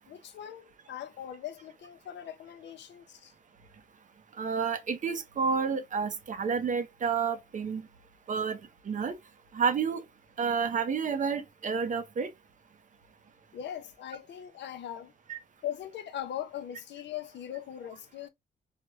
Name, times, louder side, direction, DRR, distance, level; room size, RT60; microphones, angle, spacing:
voice 1, 0.1-3.3 13.5-15.1 15.6-18.3, left 10 dB, 65° left, 0.5 m, -40 dB
voice 2, 4.4-7.8 8.3-8.6 8.9-9.2 9.5-10.0 10.4-12.3 15.3-15.4, right 6 dB, 40° right, 0.5 m, -30 dB
3.3 x 2.1 x 2.3 m
cardioid pair, 90°, 20 cm